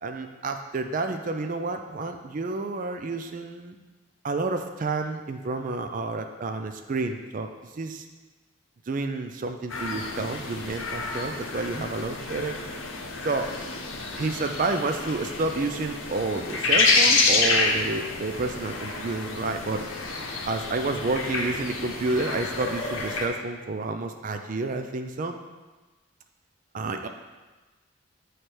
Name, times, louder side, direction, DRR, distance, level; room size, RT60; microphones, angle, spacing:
voice 1, 0.0-3.8 4.2-7.5 7.7-8.0 8.9-12.6 13.2-13.5 14.1-19.9 20.5-25.4 26.7-27.1, right 3 dB, 40° right, 6 dB, 0.4 m, -30 dB
sound 1, 9.7-23.3, left 3 dB, 80° left, 0.8 m, -28 dB
8.0 x 3.3 x 4.4 m, 1.2 s
head